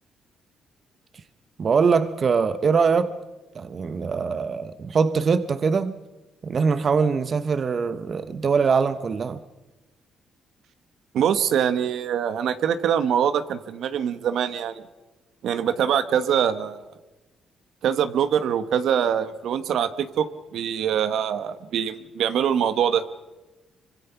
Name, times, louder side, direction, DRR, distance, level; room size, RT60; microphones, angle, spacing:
voice 1, 1.6-3.2 3.5-6.0 6.4-9.4, right 5 dB, 45° right, 0.9 m, -22 dB
voice 2, 11.1-14.8 15.4-16.8 17.8-20.3 20.5-23.0, right 8 dB, 75° right, 1.2 m, -23 dB
25.0 x 24.5 x 5.8 m
cardioid pair, 90°, 0 cm